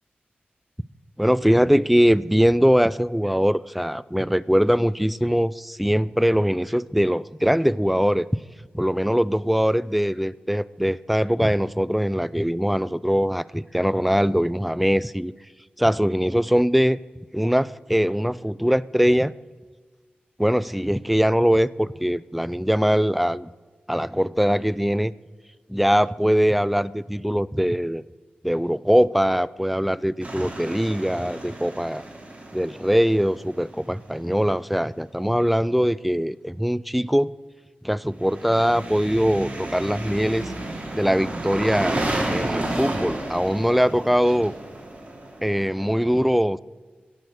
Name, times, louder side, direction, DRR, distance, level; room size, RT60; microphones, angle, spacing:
voice 1, 1.2-8.4 8.7-15.3 15.8-17.0 17.3-19.3 20.4-23.5 23.9-25.1 25.7-28.0 28.4-32.0 32.5-37.3 37.8-40.5 40.9-42.0 42.3-44.5 45.4-46.6, equal, ahead, 18 dB, 0.3 m, -22 dB
sound 1, 30.2-34.1 38.2-45.9, right 1 dB, 35° right, 3.1 m, -32 dB
17.5 x 6.7 x 6.2 m, 1.5 s
wide cardioid pair, 80°, 4 cm